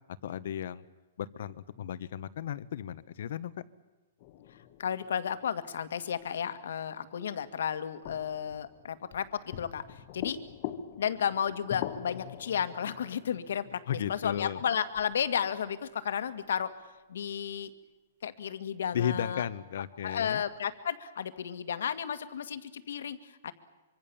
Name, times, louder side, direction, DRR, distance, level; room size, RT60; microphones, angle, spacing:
voice 1, 0.2-0.8 1.2-3.5 13.9-14.6 18.9-20.4, left 9 dB, 60° left, 16 dB, 1.2 m, -34 dB
sound 1, 4.2-6.8 8.0-15.9 20.1-20.7, left 10 dB, 35° left, 1.3 m, -44 dB
voice 2, 4.5-10.4 11.0-13.8 14.1-16.7 17.1-17.7 18.2-19.5 20.0-23.5, left 8 dB, 75° left, 12 dB, 2.0 m, -33 dB
25.0 x 25.0 x 7.2 m, 1.2 s
hypercardioid pair, 170°, 0 cm